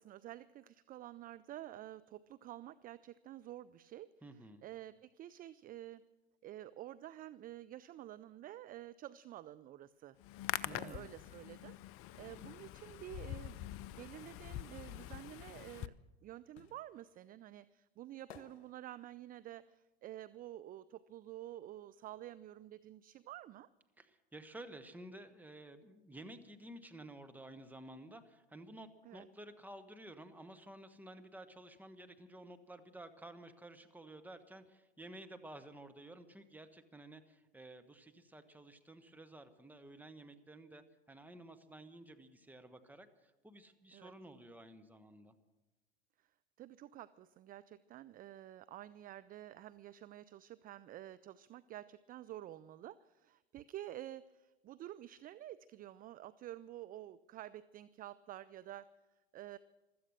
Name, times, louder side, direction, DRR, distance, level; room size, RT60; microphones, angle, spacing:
voice 1, 0.0-4.1 4.6-6.0 6.4-10.2 10.7-13.6 13.9-15.9 16.2-23.7 29.0-29.3 43.9-44.1 46.2-46.3 46.6-58.9 59.3-59.6, right 13 dB, 30° right, 16 dB, 0.4 m, -50 dB
voice 2, 4.2-4.6 10.6-11.1 24.0-43.1 43.4-45.3, right 1 dB, 5° right, 9 dB, 1.4 m, -53 dB
Hands, 10.2-15.9, left 14 dB, 45° left, 0.7 m, -45 dB
sound 1, 16.5-21.5 21.8-23.4 23.7-23.8, left 8 dB, 80° left, 1.2 m, -62 dB
15.5 x 13.0 x 6.6 m, 1.1 s
hypercardioid pair, 90°, 32 cm